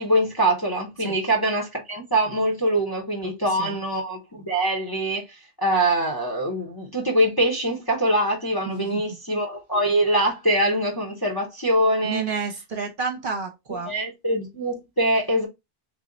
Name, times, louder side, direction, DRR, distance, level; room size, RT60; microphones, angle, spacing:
voice 1, 0.0-5.2 5.6-12.2 13.8-15.5, right 1 dB, 25° left, 0.7 m, -23 dB
voice 2, 8.6-9.0 12.0-13.9, right 5 dB, 55° right, 0.8 m, -30 dB
3.3 x 2.1 x 3.7 m
omnidirectional pair, 1.2 m